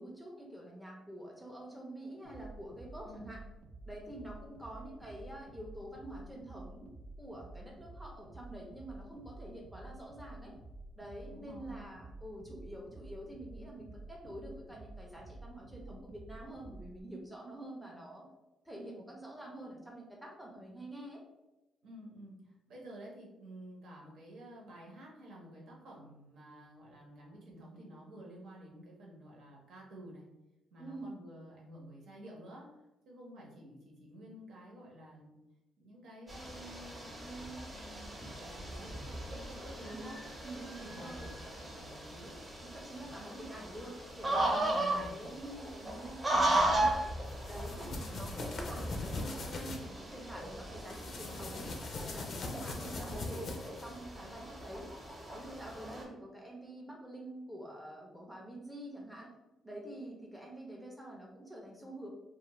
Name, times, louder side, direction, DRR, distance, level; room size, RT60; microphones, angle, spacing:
voice 1, 0.0-3.4 3.8-6.9 7.2-10.6 11.0-18.3 18.6-21.2 30.8-31.2 37.2-37.7 39.9-40.1 40.4-41.3 42.7-47.1 47.4-54.9 55.3-59.3 59.6-62.1, right 1 dB, 5° right, -2 dB, 0.6 m, -47 dB
sound 1, 2.2-17.0, right 2 dB, 65° right, 0.4 m, -51 dB
voice 2, 11.3-11.8 21.8-30.2 30.7-32.7 33.0-35.3 35.8-37.1 37.7-42.4 43.3-43.4 44.7-45.2 48.1-48.3, right 1 dB, 80° right, -3 dB, 1.0 m, -51 dB
sound 2, 36.3-56.0, right 1 dB, 25° right, 0.9 m, -37 dB
sound 3, 47.3-49.8 50.8-54.0, left 3 dB, 55° left, 0.5 m, -41 dB
2.4 x 2.4 x 3.0 m, 0.99 s
cardioid pair, 90°, 0 cm